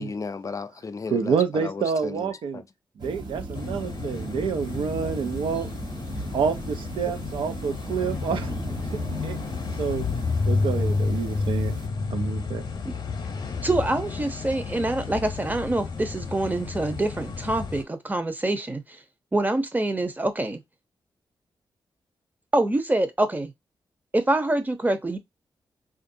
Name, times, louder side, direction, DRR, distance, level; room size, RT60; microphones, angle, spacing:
voice 1, 0.0-2.6, left 4 dB, 40° left, 0.4 m, -35 dB
voice 2, 1.1-2.6 3.0-5.7 6.3-8.5 9.2-9.4 9.8-10.0 10.4-11.8 12.1-12.6, right 6 dB, 85° right, 0.5 m, -28 dB
sound 1, 3.0-11.9, right 2 dB, 55° right, 1.1 m, -37 dB
sound 2, 3.5-17.8, left 4 dB, 55° left, 0.8 m, -31 dB
voice 3, 13.6-18.8 19.3-20.6 22.5-23.5 24.1-25.2, right 2 dB, 20° right, 0.8 m, -25 dB
3.6 x 2.5 x 2.6 m
cardioid pair, 60°, 8 cm